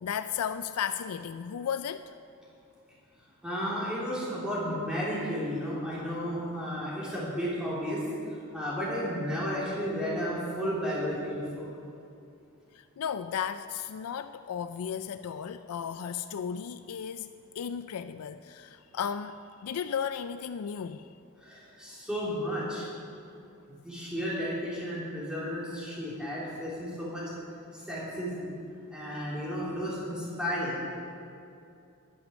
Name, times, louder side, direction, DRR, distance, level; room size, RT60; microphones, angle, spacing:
voice 1, 0.0-2.1 12.7-17.3 17.6-21.1, left 7 dB, 80° left, 11 dB, 0.4 m, -34 dB
voice 2, 3.4-8.0 8.5-11.6 21.4-22.9 23.7-27.2 27.7-28.5 28.9-30.8, equal, 5° right, -8 dB, 3.2 m, -33 dB
10.5 x 10.5 x 6.2 m, 2.6 s
head